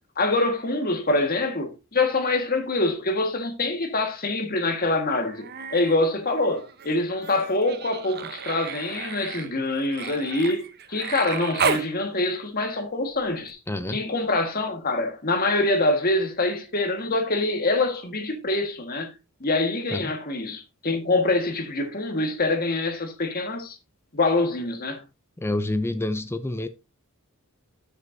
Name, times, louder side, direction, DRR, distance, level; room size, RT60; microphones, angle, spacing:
voice 1, 0.2-5.5 5.7-13.6 13.9-19.1 19.4-23.8 24.1-25.0, left 2 dB, 40° left, 1.6 m, -25 dB
Human voice, 5.2-6.0 6.3-11.9 13.5-13.6, right 6 dB, 45° right, 0.9 m, -33 dB
voice 2, 13.7-14.0 19.9-20.1 25.4-26.7, left 1 dB, 10° left, 0.5 m, -27 dB
12.0 x 6.6 x 2.7 m
head